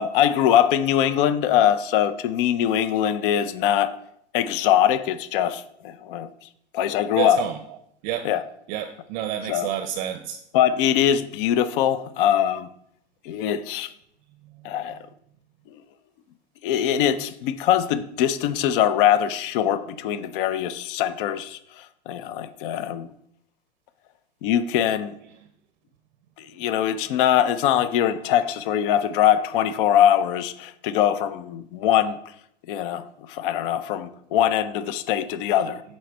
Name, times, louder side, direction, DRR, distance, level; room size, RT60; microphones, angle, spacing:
voice 1, 0.0-3.9 4.3-6.3 6.7-7.4 8.2-8.4 9.5-9.7 10.5-12.7 13.2-13.9 14.6-15.0 16.6-23.1 24.4-25.2 26.4-32.2 32.7-35.8, left 10 dB, 50° left, 0.6 m, -22 dB
voice 2, 7.2-7.5 8.0-8.3 8.7-10.4, right 11 dB, 45° right, 0.6 m, -29 dB
7.6 x 4.3 x 4.6 m
supercardioid pair, 145°, 33 cm